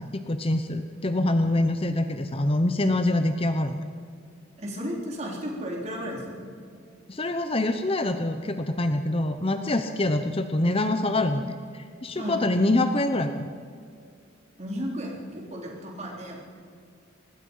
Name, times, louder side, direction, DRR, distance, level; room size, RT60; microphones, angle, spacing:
voice 1, 0.0-3.8 7.1-13.5, left 1 dB, 25° left, 8 dB, 0.8 m, -25 dB
voice 2, 4.6-6.5 12.1-12.5 14.6-16.4, equal, 35° right, -1 dB, 4.0 m, -34 dB
24.0 x 20.5 x 5.6 m, 2.3 s
head